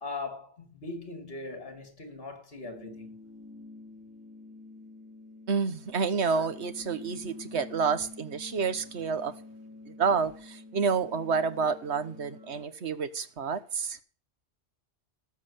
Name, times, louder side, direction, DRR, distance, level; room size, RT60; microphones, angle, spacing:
voice 1, 0.0-3.1, left 3 dB, 55° left, 2.8 m, -40 dB
sound 1, 2.6-12.6, left 3 dB, 5° right, 1.9 m, -48 dB
voice 2, 5.5-9.3 9.9-14.0, right 5 dB, 70° right, 1.3 m, -29 dB
18.0 x 6.1 x 7.1 m
omnidirectional pair, 1.2 m